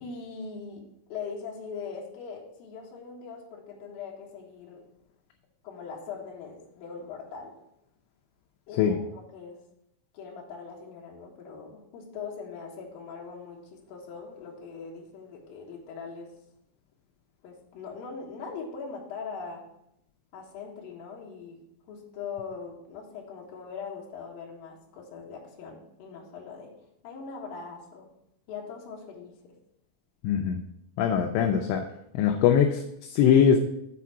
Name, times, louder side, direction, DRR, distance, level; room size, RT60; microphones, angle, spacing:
voice 1, 0.0-4.9 5.6-7.5 8.7-9.6 10.1-16.3 17.4-19.6 20.3-21.6 21.9-26.7 27.0-28.1 28.5-29.6, left 5 dB, 60° left, -3 dB, 2.9 m, -41 dB
voice 2, 30.2-30.6 31.0-31.9 32.1-33.6, left 8 dB, 80° left, 4 dB, 2.7 m, -22 dB
8.4 x 4.2 x 5.8 m, 0.79 s
omnidirectional pair, 5.3 m